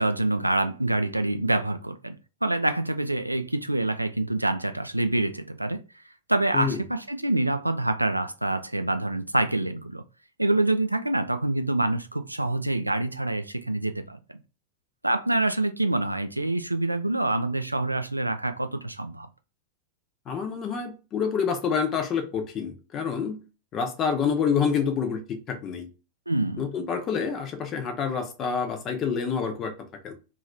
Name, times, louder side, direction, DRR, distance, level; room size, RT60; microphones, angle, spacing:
voice 1, 0.0-2.2 2.4-5.8 6.3-10.0 10.4-14.2 15.0-19.3 26.3-26.7, right 2 dB, 85° right, 0.3 m, -26 dB
voice 2, 20.3-23.4 23.7-25.9 26.6-29.7 30.0-30.1, left 6 dB, 30° left, 0.8 m, -27 dB
2.8 x 2.7 x 3.3 m
figure-of-eight pair, 90°, 0 cm